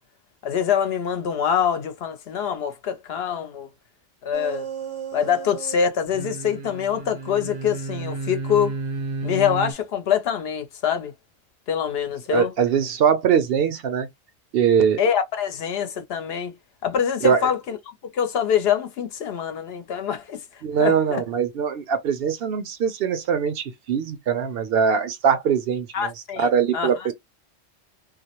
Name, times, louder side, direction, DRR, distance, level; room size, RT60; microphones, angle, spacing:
voice 1, 0.4-3.7 4.2-4.7 5.1-8.8 9.2-11.1 11.7-12.5 15.0-16.5 16.8-17.8 18.1-21.2 25.9-27.1, left 8 dB, 65° left, 0.8 m, -25 dB
sound 1, 4.3-5.7 6.0-9.7, right 3 dB, 85° right, 1.1 m, -32 dB
voice 2, 12.3-14.1 14.5-15.0 17.2-17.4 20.6-27.1, right 7 dB, 65° right, 0.7 m, -22 dB
2.3 x 2.0 x 2.8 m
omnidirectional pair, 1.2 m